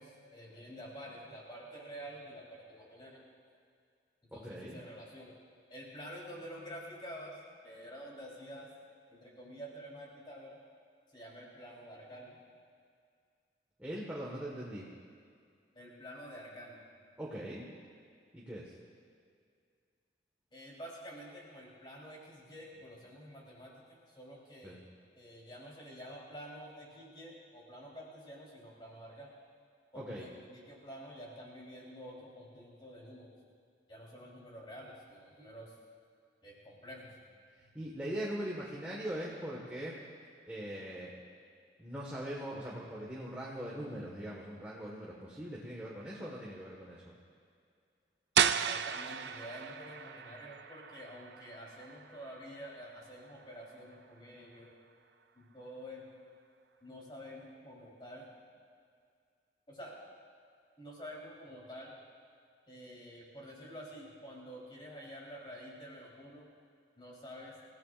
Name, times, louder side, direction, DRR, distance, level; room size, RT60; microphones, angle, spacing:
voice 1, 0.0-3.2 4.3-5.3 5.7-8.7 9.1-10.6 11.1-12.4 15.7-16.8 20.5-24.8 25.2-29.3 29.9-33.3 33.9-35.7 36.4-37.1 48.5-54.7 55.3-56.1 56.8-58.3 59.7-60.0 60.8-62.0 62.7-66.5 67.0-67.6, equal, 25° left, -4 dB, 3.8 m, -49 dB
voice 2, 4.3-4.8 13.8-14.9 17.2-17.7 18.3-18.7 24.6-24.8 29.9-30.2 37.6-40.0 40.5-41.1 41.8-47.1, equal, 10° right, -6 dB, 1.6 m, -41 dB
sound 1, 48.4-54.0, right 8 dB, 70° right, 0.4 m, -35 dB
28.0 x 16.0 x 2.6 m, 2.2 s
head